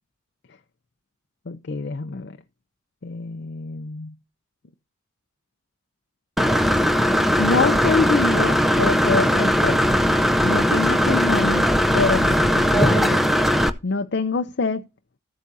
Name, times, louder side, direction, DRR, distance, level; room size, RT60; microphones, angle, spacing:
voice 1, 1.5-2.4 3.0-4.1 7.4-9.8 10.4-11.7 11.9-13.2 13.8-14.8, left 4 dB, 55° left, 0.5 m, -25 dB
Engine / Mechanisms, 6.4-13.7, equal, ahead, 0.5 m, -19 dB
14.5 x 8.3 x 2.7 m
head